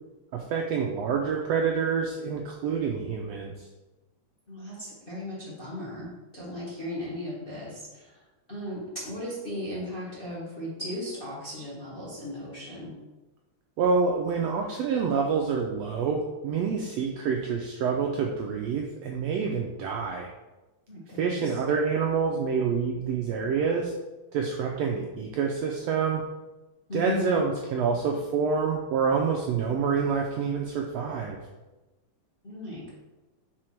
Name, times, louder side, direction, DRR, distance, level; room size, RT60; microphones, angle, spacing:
voice 1, 0.3-3.6 13.8-20.3 21.2-23.9 24.3-26.2 26.9-31.4, right 5 dB, 80° right, 1 dB, 1.5 m, -27 dB
voice 2, 4.5-8.2 8.5-12.9 20.9-21.6 26.9-27.4 32.4-32.9, left 1 dB, 25° left, -6 dB, 1.4 m, -36 dB
6.2 x 4.1 x 4.5 m, 1.1 s
omnidirectional pair, 3.5 m